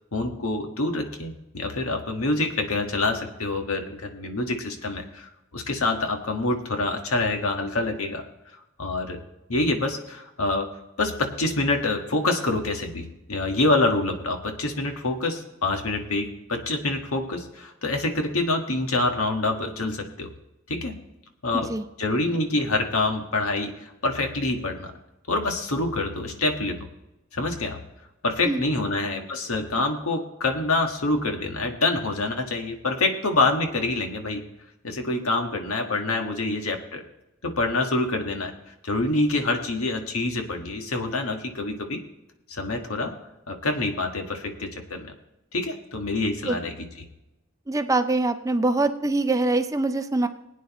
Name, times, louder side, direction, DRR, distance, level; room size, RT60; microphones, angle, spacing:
voice 1, 0.1-8.2 8.8-9.2 9.5-10.7 11.0-20.3 20.7-21.0 21.4-21.7 22.0-24.9 25.3-26.8 27.3-27.8 28.2-34.4 34.8-37.0 37.4-38.5 38.8-42.0 42.5-43.1 43.5-45.1 45.5-46.9, left 2 dB, 75° left, 4 dB, 1.5 m, -26 dB
voice 2, 47.7-50.3, right 2 dB, 15° right, 9 dB, 0.4 m, -23 dB
20.5 x 9.1 x 3.0 m, 0.95 s
head